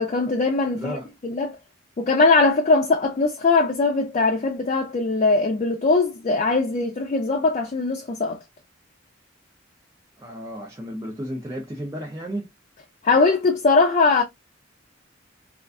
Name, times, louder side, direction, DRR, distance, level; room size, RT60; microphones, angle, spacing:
voice 1, 0.0-1.0 1.2-1.6 2.0-8.4 13.0-14.2, left 3 dB, 40° left, 0.4 m, -20 dB
voice 2, 0.7-1.1 10.2-12.5, equal, 15° right, 0.5 m, -33 dB
2.4 x 2.2 x 2.3 m
head